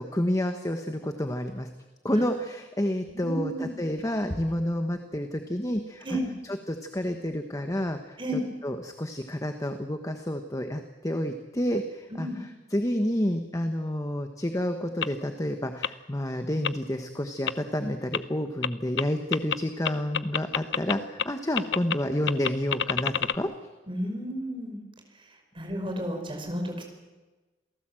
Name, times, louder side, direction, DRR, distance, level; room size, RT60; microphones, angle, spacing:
voice 1, 0.0-1.7 2.0-6.0 6.5-12.3 12.7-23.5, left 1 dB, 20° left, 6 dB, 1.2 m, -29 dB
voice 2, 3.1-3.7 6.0-6.3 8.2-8.4 12.1-12.4 23.9-24.8 25.6-26.8, equal, 30° right, 3 dB, 5.3 m, -32 dB
sound 1, 15.0-15.1 15.8-15.9 16.6-16.7 17.5-17.6 18.1-18.2 18.6-18.7 19.0-19.1 19.3-19.6 19.9-20.9 21.2-21.3 21.6-22.0 22.3-23.4, left 8 dB, 70° left, 0.7 m, -26 dB
28.0 x 17.5 x 7.7 m, 1.2 s
head